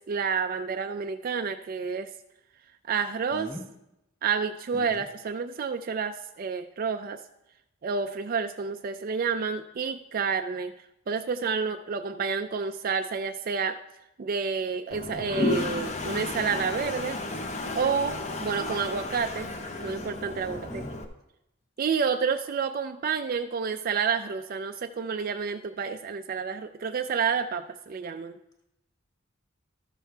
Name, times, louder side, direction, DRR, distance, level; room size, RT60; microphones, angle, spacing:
voice 1, 0.1-2.1 2.9-3.5 4.2-7.2 7.8-10.7 11.1-13.7 14.2-17.2 17.7-19.5 19.8-20.8 21.8-28.4, right 5 dB, 45° right, 7 dB, 0.3 m, -29 dB
voice 2, 3.3-3.6 4.9-5.0 20.5-20.9, equal, 15° left, 0 dB, 1.5 m, -40 dB
Toilet flush, 14.9-21.0, left 2 dB, 35° left, 0.7 m, -33 dB
13.0 x 6.4 x 3.4 m, 0.86 s
head